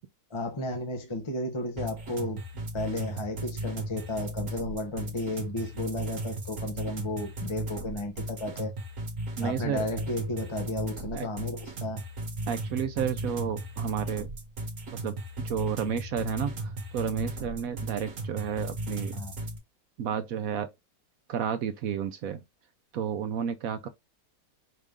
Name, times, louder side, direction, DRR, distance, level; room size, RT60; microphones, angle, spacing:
voice 1, 0.3-8.7 9.4-12.0 19.1-19.3, left 2 dB, 25° left, 0.6 m, -34 dB
sound 1, 1.8-19.6, right 1 dB, 50° right, 1.5 m, -36 dB
voice 2, 9.4-9.9 11.1-11.3 12.5-14.3 15.0-19.2 20.0-20.7 21.3-22.4 22.9-23.9, right 8 dB, 70° right, 0.9 m, -31 dB
5.4 x 2.6 x 3.5 m
omnidirectional pair, 1.9 m